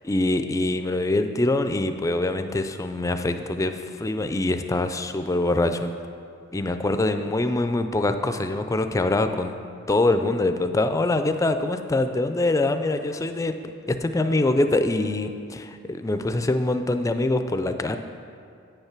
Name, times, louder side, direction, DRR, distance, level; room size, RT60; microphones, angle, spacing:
voice 1, 0.0-5.9 6.5-9.6 9.9-13.6 13.9-18.0, left 2 dB, 15° left, 8 dB, 0.3 m, -24 dB
8.6 x 5.5 x 5.9 m, 2.4 s
head